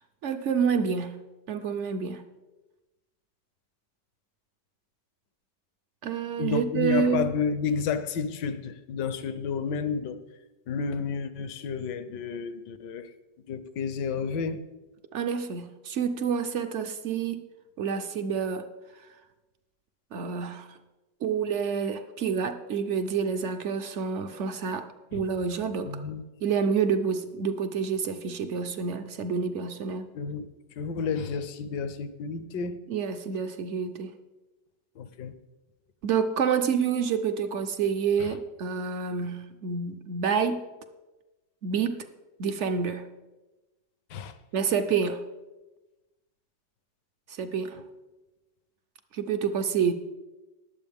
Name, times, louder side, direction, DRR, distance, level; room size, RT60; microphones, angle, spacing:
voice 1, 0.2-1.2 1.5-2.2 6.0-7.3 15.1-17.4 17.8-18.7 20.1-20.8 21.2-24.9 25.1-26.0 26.4-30.1 32.9-34.1 36.0-40.6 41.6-42.0 42.4-43.1 44.5-45.2 47.3-47.8 49.1-49.9, right 6 dB, 60° right, 8 dB, 0.7 m, -28 dB
voice 2, 6.4-10.2 10.7-13.1 13.5-14.6 25.1-25.2 25.8-26.2 30.1-30.5 30.8-32.8 35.0-35.3 38.2-38.3 44.1-44.3, left 5 dB, 75° left, 12 dB, 1.4 m, -31 dB
20.0 x 7.7 x 3.5 m, 1.1 s
omnidirectional pair, 1.9 m